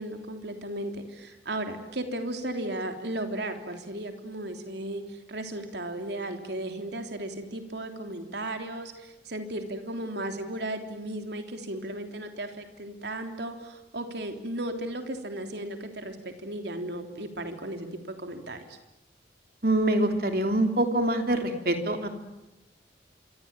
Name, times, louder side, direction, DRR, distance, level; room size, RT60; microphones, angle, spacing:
voice 1, 0.0-18.8, right 1 dB, 70° right, 6 dB, 3.4 m, -35 dB
voice 2, 19.6-22.1, right 1 dB, 55° right, 5 dB, 3.3 m, -25 dB
26.5 x 25.0 x 9.0 m, 0.94 s
head